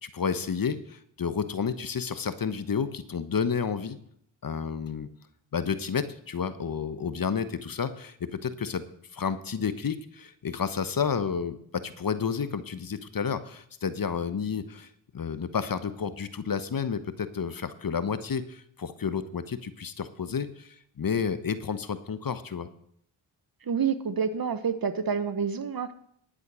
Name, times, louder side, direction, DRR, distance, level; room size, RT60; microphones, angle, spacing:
voice 1, 0.0-4.0 4.4-5.1 5.5-8.8 9.1-14.9 15.1-22.7, left 6 dB, 45° left, 12 dB, 1.1 m, -31 dB
voice 2, 23.7-25.9, right 6 dB, 45° right, 12 dB, 1.2 m, -28 dB
11.5 x 8.1 x 6.2 m, 0.67 s
supercardioid pair, 45°, 49 cm